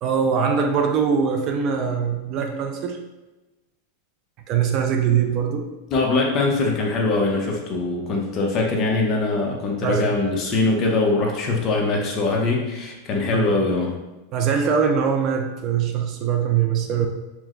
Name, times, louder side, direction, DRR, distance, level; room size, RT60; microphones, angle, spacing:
voice 1, 0.0-3.0 4.5-5.7 9.8-10.1 13.3-13.5 14.3-17.1, right 7 dB, 35° right, 4 dB, 0.4 m, -22 dB
voice 2, 5.9-13.9, left 3 dB, 30° left, -1 dB, 0.8 m, -22 dB
4.6 x 2.1 x 3.7 m, 1.1 s
supercardioid pair, 155°, 0 cm